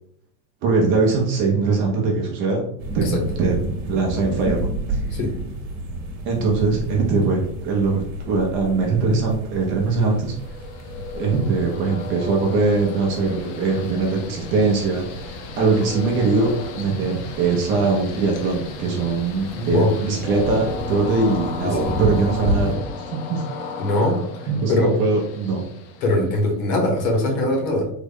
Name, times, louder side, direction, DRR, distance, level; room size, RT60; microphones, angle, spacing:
voice 1, 0.6-2.6 2.9-3.5 3.9-5.0 6.3-10.3 11.1-22.8 23.1-23.4 24.5-25.6, right 4 dB, 30° right, 0 dB, 0.4 m, -21 dB
sound 1, 2.8-22.7, right 1 dB, 45° right, 0.9 m, -32 dB
Train, 9.9-26.6, left 4 dB, 50° left, 0.5 m, -35 dB
voice 2, 19.5-20.0 21.6-22.0 23.8-24.2 24.7-24.9 26.0-27.9, left 1 dB, 75° left, 1 dB, 1.3 m, -21 dB
3.6 x 2.1 x 3.4 m, 0.70 s
cardioid pair, 175°, 42 cm